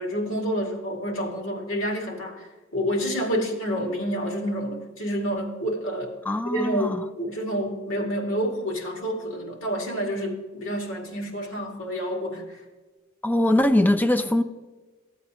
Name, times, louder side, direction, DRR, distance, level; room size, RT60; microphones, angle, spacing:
voice 1, 0.0-6.1 6.5-12.6, equal, 90° left, 2.1 m, -29 dB
voice 2, 6.3-7.0 13.2-14.4, left 1 dB, 10° left, 0.5 m, -21 dB
14.0 x 8.2 x 2.8 m
head